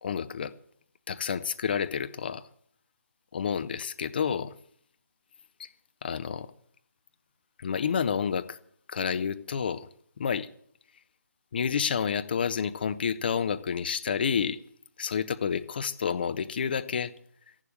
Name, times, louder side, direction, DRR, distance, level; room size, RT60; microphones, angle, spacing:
voice 1, 0.0-0.5 1.1-2.4 3.3-4.5 5.6-5.7 6.0-6.5 7.6-8.6 8.9-9.9 10.2-10.5 11.5-14.6 15.0-17.1, left 7 dB, 35° left, 0.7 m, -29 dB
14.5 x 11.5 x 6.5 m
figure-of-eight pair, 150°, 10 cm